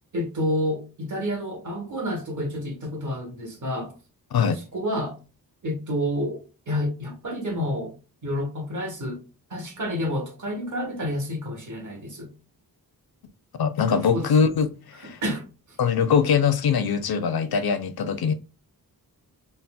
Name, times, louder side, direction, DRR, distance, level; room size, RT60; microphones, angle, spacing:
voice 1, 0.1-3.9 4.7-5.2 5.6-7.9 8.2-9.2 9.5-12.3 14.1-14.3 15.2-15.5, left 1 dB, 50° right, 1.0 m, -29 dB
voice 2, 13.5-15.2 15.8-18.3, left 6 dB, 70° left, 0.5 m, -22 dB
4.0 x 2.0 x 2.2 m
wide cardioid pair, 115°, 39 cm